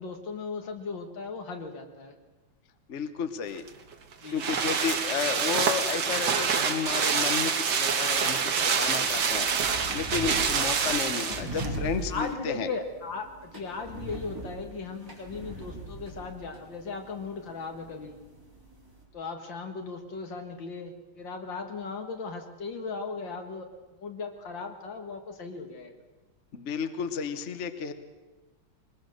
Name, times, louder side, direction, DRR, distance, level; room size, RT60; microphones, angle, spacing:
voice 1, 0.0-2.2 4.2-4.5 8.6-8.8 11.3-11.5 12.1-18.2 19.1-23.7 23.9-25.9, left 4 dB, 65° left, 4 dB, 2.5 m, -37 dB
voice 2, 2.9-3.6 4.3-9.5 9.9-12.7 26.5-27.9, left 6 dB, 45° left, 9 dB, 1.1 m, -32 dB
sound 1, 3.6-11.8 12.1-12.2, right 6 dB, 60° right, 1.8 m, -26 dB
sound 2, 8.0-19.0, right 1 dB, 10° right, 3.8 m, -41 dB
22.0 x 21.0 x 6.5 m, 1.2 s
omnidirectional pair, 2.2 m